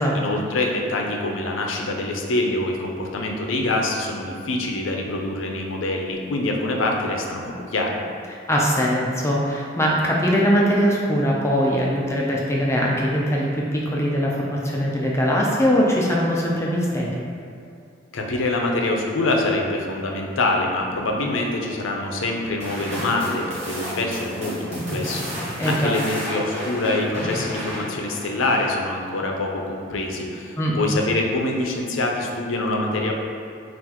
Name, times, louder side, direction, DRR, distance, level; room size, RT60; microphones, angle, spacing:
voice 1, 0.1-8.0 18.1-33.1, left 2 dB, 80° left, 1 dB, 0.5 m, -25 dB
voice 2, 8.5-17.2 25.6-25.9 30.6-30.8, equal, 15° left, -3 dB, 0.4 m, -21 dB
sound 1, 22.6-29.1, equal, 35° right, 1.1 m, -32 dB
5.7 x 2.5 x 2.9 m, 2.6 s
head